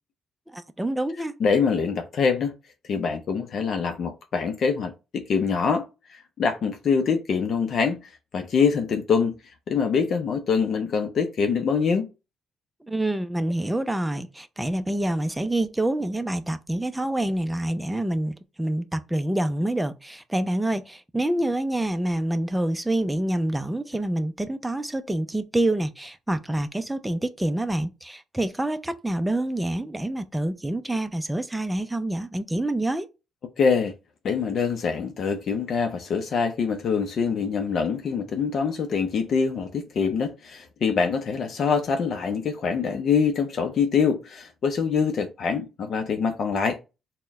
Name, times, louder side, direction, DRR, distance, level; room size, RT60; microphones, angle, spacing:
voice 1, 0.5-1.3 12.8-33.1, right 1 dB, 10° right, 0.5 m, -27 dB
voice 2, 1.4-2.5 2.8-9.3 9.7-12.1 33.6-33.9 34.2-46.8, left 5 dB, 60° left, 0.6 m, -24 dB
4.2 x 2.2 x 3.6 m
cardioid pair, 90°, 0 cm